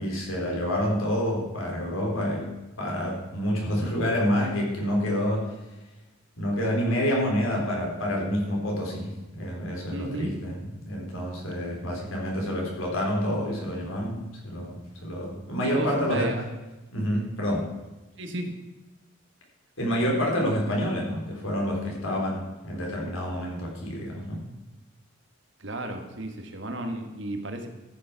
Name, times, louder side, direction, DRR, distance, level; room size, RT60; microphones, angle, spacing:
voice 1, 0.0-2.5 2.8-5.5 6.4-16.3 16.9-17.7 19.8-24.4, equal, 75° left, -1 dB, 3.6 m, -28 dB
voice 2, 9.9-10.3 11.6-11.7 15.6-16.4 18.2-18.5 25.6-27.7, right 1 dB, 60° right, 5 dB, 1.6 m, -33 dB
14.0 x 6.9 x 5.9 m, 1.1 s
head